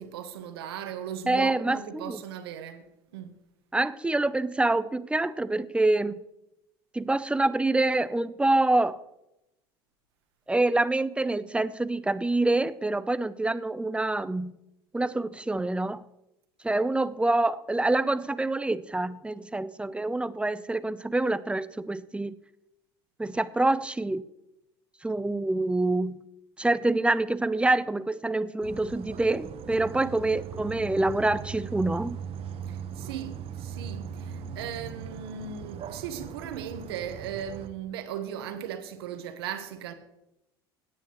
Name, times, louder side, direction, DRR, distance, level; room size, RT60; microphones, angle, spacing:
voice 1, 0.0-2.9 3.1-3.4 32.7-39.9, right 8 dB, 80° right, 1.2 m, -37 dB
voice 2, 1.3-2.2 3.7-6.2 6.9-9.0 10.5-14.5 14.9-16.0 16.6-22.3 23.2-24.2 25.0-26.2 26.6-32.2, right 2 dB, 10° right, 0.5 m, -26 dB
sound 1, 28.6-37.7, right 7 dB, 50° right, 1.0 m, -39 dB
17.0 x 9.1 x 3.1 m
hypercardioid pair, 80°, 13 cm